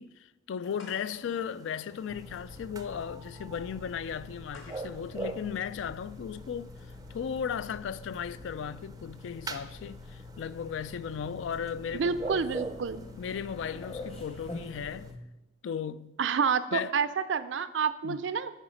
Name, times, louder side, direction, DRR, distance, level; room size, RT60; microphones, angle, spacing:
voice 1, 0.0-6.7 7.1-12.7 13.2-15.1 15.6-16.2 16.7-16.9 18.0-18.2, left 7 dB, 70° left, 0.3 m, -36 dB
sound 1, 0.6-15.1, right 3 dB, 20° right, 0.4 m, -45 dB
sound 2, 0.8-6.4, left 2 dB, 90° left, 1.5 m, -57 dB
sound 3, 2.1-15.2, left 3 dB, 30° left, 0.9 m, -46 dB
voice 2, 12.0-13.0 16.2-18.5, right 6 dB, 70° right, 0.4 m, -28 dB
9.9 x 4.9 x 5.1 m
head